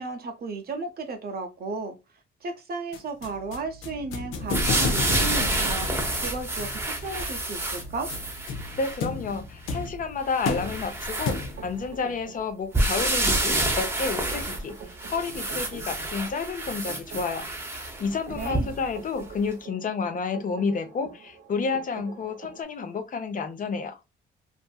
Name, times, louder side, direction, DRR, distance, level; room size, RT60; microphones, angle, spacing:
voice 1, 0.0-1.9 2.4-5.9 6.2-8.1 18.3-18.8, right 3 dB, 50° right, 0.7 m, -34 dB
sound 1, 2.9-11.8, left 4 dB, 85° left, 0.5 m, -34 dB
sound 2, 4.5-9.0 9.7-9.8 10.3-11.9 12.7-18.9 19.5-19.6, right 1 dB, 10° right, 0.7 m, -28 dB
voice 2, 8.8-14.8 15.1-17.5 18.0-24.0, left 4 dB, 40° left, 0.6 m, -30 dB
sound 3, 11.6-22.6, right 5 dB, 85° right, 0.9 m, -46 dB
2.6 x 2.5 x 2.2 m
cardioid pair, 90°, 20 cm